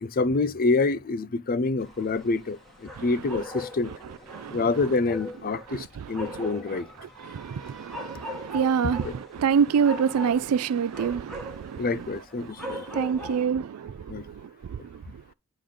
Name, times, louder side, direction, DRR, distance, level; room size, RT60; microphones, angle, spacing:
voice 1, 0.0-3.9 4.5-6.9 8.8-9.1 11.8-12.9 14.1-14.3, left 3 dB, 40° left, 0.5 m, -27 dB
sound 1, 1.8-13.5, left 1 dB, ahead, 2.4 m, -40 dB
voice 2, 4.3-4.6 5.7-6.5 7.2-11.9 12.4-15.0, right 7 dB, 85° right, 0.4 m, -27 dB
10.0 x 3.9 x 5.0 m
head